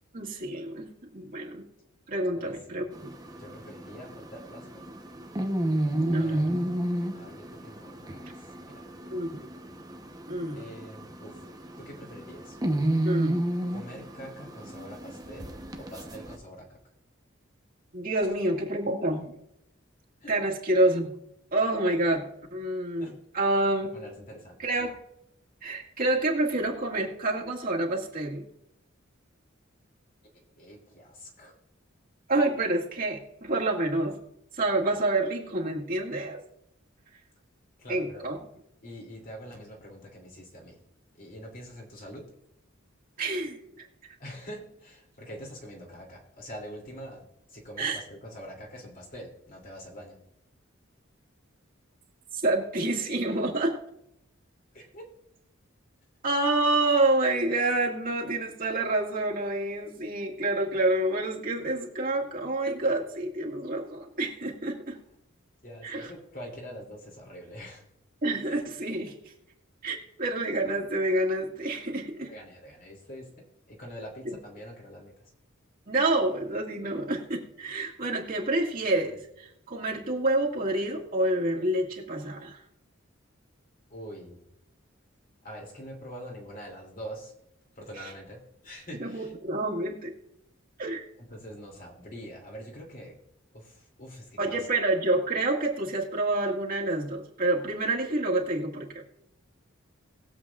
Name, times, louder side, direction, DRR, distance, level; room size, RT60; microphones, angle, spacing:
voice 1, 0.1-1.6 2.1-3.1 6.0-6.6 9.1-9.5 10.3-10.6 13.0-13.4 17.9-19.4 20.3-21.1 21.5-23.9 24.6-25.0 25.6-28.4 32.3-34.2 34.6-36.4 37.9-38.4 43.2-43.9 47.8-48.0 52.3-53.8 56.2-65.0 65.8-66.1 68.2-69.2 69.8-72.3 74.3-74.4 75.9-82.6 89.0-90.1 90.8-91.0 94.4-98.9, right 2 dB, 45° right, -2 dB, 2.0 m, -28 dB
voice 2, 2.4-2.8 3.4-4.8 6.1-6.8 7.1-8.3 8.6-8.8 10.5-11.4 11.8-12.6 13.7-16.8 20.2-20.4 23.0-23.1 23.9-24.6 30.3-31.6 37.8-38.3 38.8-40.8 41.1-42.3 44.2-50.2 54.7-55.1 65.6-67.8 72.3-75.3 83.9-84.4 85.4-87.3 87.8-89.3 91.3-93.1 93.5-94.7, equal, 45° left, 0 dB, 2.8 m, -44 dB
sound 1, 2.9-16.4, right 1 dB, 20° right, 0.9 m, -32 dB
20.5 x 7.8 x 2.4 m, 0.78 s
head